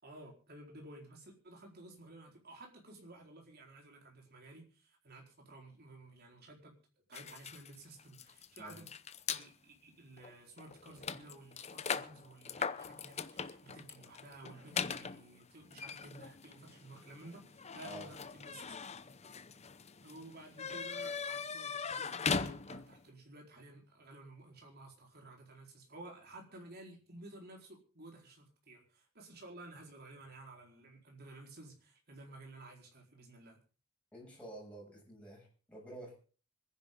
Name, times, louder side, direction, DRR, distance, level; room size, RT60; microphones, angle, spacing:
voice 1, 0.0-6.8 7.1-8.9 9.3-18.7 20.0-33.6, right 2 dB, 45° right, 0 dB, 4.5 m, -53 dB
sound 1, 7.1-9.5 10.2-10.3 10.6-23.0, left 5 dB, 30° left, 0.7 m, -41 dB
voice 2, 34.1-36.1, right 1 dB, 5° left, -3 dB, 7.4 m, -49 dB
25.5 x 10.5 x 3.9 m, 0.38 s
head